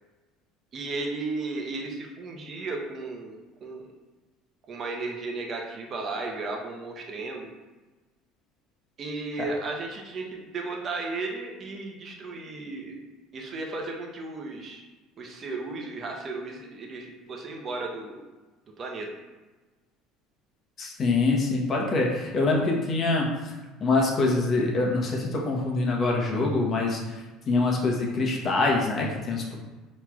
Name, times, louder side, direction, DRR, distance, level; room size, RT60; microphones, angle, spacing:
voice 1, 0.7-3.4 3.6-3.9 4.7-7.5 9.0-13.0 13.3-14.8 15.2-18.2 18.8-19.1, right 3 dB, 35° right, 1 dB, 0.8 m, -34 dB
voice 2, 20.8-23.3 23.8-27.2 27.5-29.5, left 3 dB, 35° left, -1 dB, 0.9 m, -25 dB
5.6 x 3.1 x 2.3 m, 1.2 s
cardioid pair, 130°, 0 cm